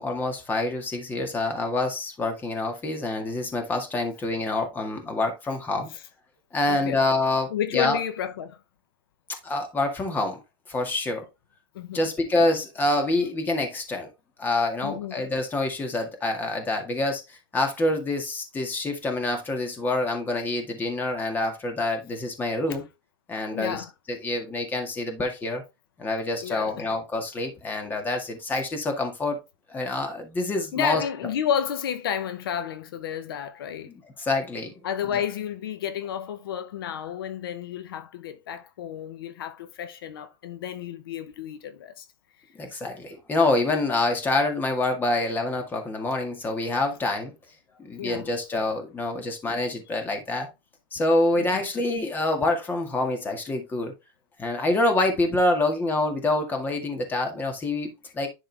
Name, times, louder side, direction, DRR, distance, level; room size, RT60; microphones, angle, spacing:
voice 1, 0.0-5.9 6.5-8.0 9.4-10.4 10.7-11.3 11.9-14.1 14.4-22.8 23.3-25.6 26.0-29.4 29.7-31.0 33.9-34.7 42.6-47.3 47.8-50.5 50.9-53.9 54.4-58.3, left 2 dB, 15° left, 1.9 m, -26 dB
voice 2, 6.7-7.0 7.5-8.6 11.7-12.1 14.8-15.2 22.7-22.8 23.5-23.9 26.4-26.9 30.7-33.9 34.8-42.0 48.0-48.3 51.4-51.6, left 9 dB, 85° left, 1.0 m, -31 dB
10.0 x 3.8 x 3.4 m
supercardioid pair, 140°, 12 cm